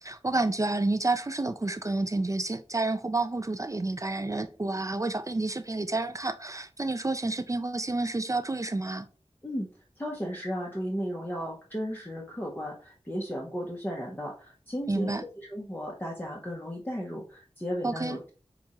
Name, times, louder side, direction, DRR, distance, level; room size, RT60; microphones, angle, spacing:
voice 1, 0.0-9.1 14.9-15.2 17.8-18.2, right 2 dB, 30° right, 0.4 m, -29 dB
voice 2, 10.0-15.1 15.5-18.3, equal, 15° left, 1.0 m, -35 dB
7.0 x 2.4 x 3.0 m
wide cardioid pair, 60°, 11 cm